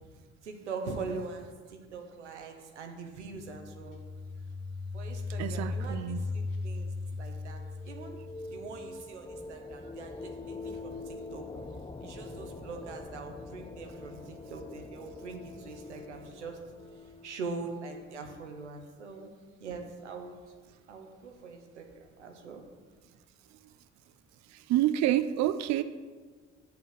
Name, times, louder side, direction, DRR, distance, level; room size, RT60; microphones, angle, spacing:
voice 1, 0.4-4.0 4.9-6.9 7.2-8.2 8.5-11.4 12.0-16.6 17.0-19.3 19.6-20.4 20.9-22.6, right 4 dB, 90° right, 4 dB, 0.9 m, -42 dB
sound 1, 3.2-8.8, left 3 dB, 60° left, 1.7 m, -37 dB
voice 2, 5.4-6.3 24.5-25.8, right 13 dB, 55° right, 12 dB, 0.5 m, -28 dB
sound 2, 7.5-18.0, left 3 dB, 15° left, 0.6 m, -45 dB
6.8 x 6.5 x 6.8 m, 1.5 s
hypercardioid pair, 45°, 34 cm